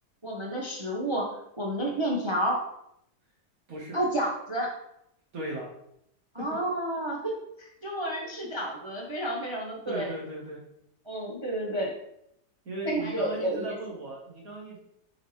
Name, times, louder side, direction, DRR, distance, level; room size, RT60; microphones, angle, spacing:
voice 1, 0.2-2.6 3.9-4.7 6.3-7.3 7.6-10.1 11.1-11.9 12.8-13.7, right 1 dB, 30° right, -1 dB, 0.6 m, -30 dB
voice 2, 5.3-5.7 9.9-10.6 12.6-14.8, right 1 dB, 60° right, -3 dB, 1.6 m, -37 dB
7.4 x 4.5 x 3.1 m, 0.77 s
omnidirectional pair, 1.8 m